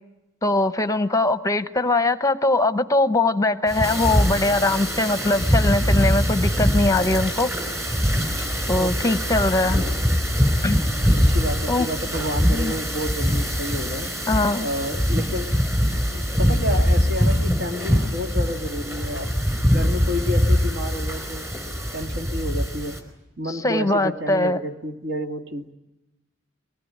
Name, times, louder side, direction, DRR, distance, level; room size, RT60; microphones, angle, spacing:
voice 1, 0.4-7.5 8.7-9.8 10.6-10.8 11.7-11.9 12.5-12.7 14.3-14.7 23.5-24.6, left 2 dB, 15° left, 10 dB, 0.8 m, -21 dB
sound 1, 3.7-23.0, equal, 15° right, 4.5 m, -23 dB
voice 2, 8.7-9.4 9.6-10.0 11.1-14.1 14.6-15.5 16.1-21.4 21.9-23.0 23.4-25.7, left 1 dB, 65° right, 4 dB, 2.2 m, -30 dB
23.5 x 19.0 x 9.9 m, 0.96 s
head